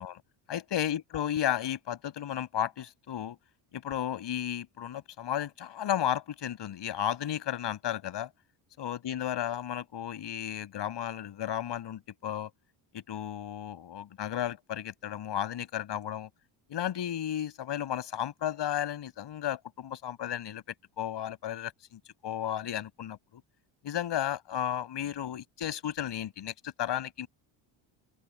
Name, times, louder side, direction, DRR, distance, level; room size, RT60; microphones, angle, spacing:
voice 1, 0.5-3.4 3.7-8.3 8.8-12.5 12.9-16.3 16.7-20.6 21.0-23.4 23.8-27.3, left 10 dB, 55° left, 6.1 m, -33 dB
open air
cardioid pair, 110°, 49 cm